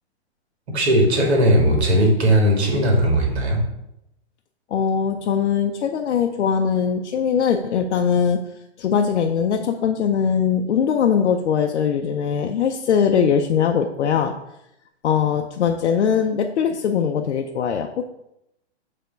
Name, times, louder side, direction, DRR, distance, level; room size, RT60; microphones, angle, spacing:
voice 1, 0.7-3.6, equal, 70° right, 0 dB, 2.2 m, -17 dB
voice 2, 4.7-8.4 8.8-14.3 15.0-18.0, left 7 dB, 85° left, 3 dB, 0.6 m, -21 dB
6.8 x 3.6 x 5.2 m, 0.84 s
hypercardioid pair, 150°, 33 cm